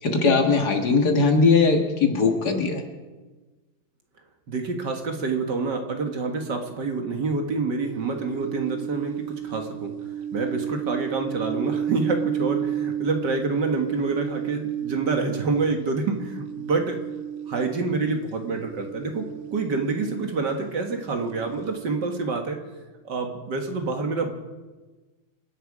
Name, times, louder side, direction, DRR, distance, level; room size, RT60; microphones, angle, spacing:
voice 1, 0.0-2.8, left 4 dB, 55° left, 4 dB, 2.2 m, -20 dB
voice 2, 4.5-9.9 10.3-17.0 17.5-22.6 23.0-24.3, right 4 dB, 60° right, 4 dB, 2.2 m, -27 dB
sound 1, 7.8-18.1 18.4-20.4 20.9-22.0, right 9 dB, 80° right, 0.6 m, -33 dB
27.5 x 10.5 x 4.9 m, 1.2 s
omnidirectional pair, 2.2 m